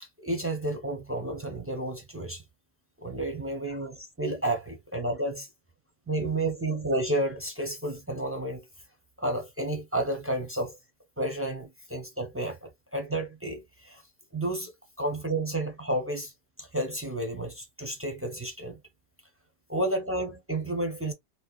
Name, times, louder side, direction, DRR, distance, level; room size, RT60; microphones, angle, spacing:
voice 1, 0.0-2.4 3.0-5.5 6.1-8.6 9.2-10.8 11.2-14.0 14.3-14.7 15.0-16.3 16.6-18.8 19.7-21.1, right 1 dB, 20° right, 0.4 m, -31 dB
2.8 x 2.2 x 2.3 m
omnidirectional pair, 1.2 m